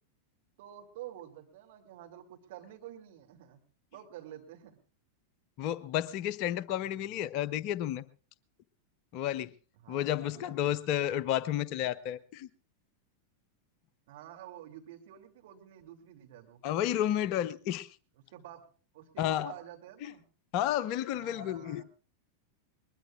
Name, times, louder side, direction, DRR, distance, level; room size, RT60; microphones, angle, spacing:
voice 1, 0.6-3.6 3.9-4.8 6.8-7.2 9.8-10.6 14.1-16.6 18.3-18.7 18.9-20.2 21.1-21.8, right 11 dB, 55° right, 2.7 m, -49 dB
voice 2, 5.6-8.0 9.1-9.5 9.9-12.5 16.6-17.9 19.2-19.5 20.5-21.8, left 11 dB, 40° left, 0.7 m, -31 dB
21.5 x 20.5 x 2.4 m
figure-of-eight pair, 90°, 0 cm